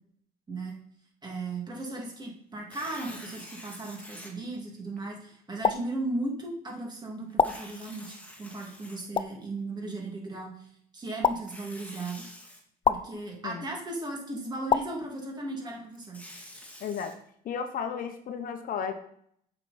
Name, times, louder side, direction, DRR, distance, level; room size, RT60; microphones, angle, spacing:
voice 1, 1.2-12.2 12.9-16.2, right 2 dB, 25° right, 0 dB, 2.5 m, -36 dB
Tearing, 2.6-4.3 5.0-5.1 7.3-9.4 11.3-12.6 15.7-17.1, left 1 dB, 10° left, 2.0 m, -47 dB
sound 1, 5.6-5.8 7.4-7.5 9.1-9.3 11.2-11.4 12.8-13.0 14.7-14.8, left 6 dB, 30° left, 0.5 m, -23 dB
voice 2, 16.8-17.1 17.4-18.9, left 7 dB, 55° left, 7 dB, 1.0 m, -33 dB
8.0 x 6.1 x 4.3 m, 0.66 s
cardioid pair, 110°, 17 cm